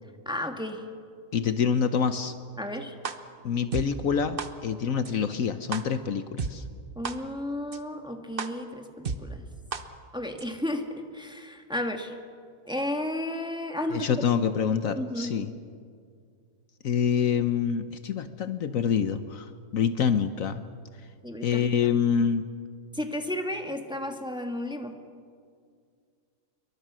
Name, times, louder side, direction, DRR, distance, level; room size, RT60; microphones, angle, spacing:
voice 1, 0.2-0.8 2.6-2.9 6.9-9.4 10.1-12.1 12.6-14.3 15.0-15.4 21.2-21.9 22.9-24.9, left 1 dB, 5° right, 4 dB, 1.6 m, -33 dB
voice 2, 1.3-2.3 3.4-6.6 13.9-15.5 16.8-20.6 21.4-22.4, left 7 dB, 65° left, 10 dB, 1.2 m, -26 dB
sound 1, 3.0-3.1 3.7-3.8 4.4-4.5 5.1-5.2 5.7-5.8 6.4-6.5 7.0-7.1 7.7-7.8 8.4-8.5 9.1-9.2 9.7-9.8 10.4-10.5, right 5 dB, 40° right, 1.2 m, -30 dB
28.0 x 23.0 x 6.2 m, 2.2 s
omnidirectional pair, 1.6 m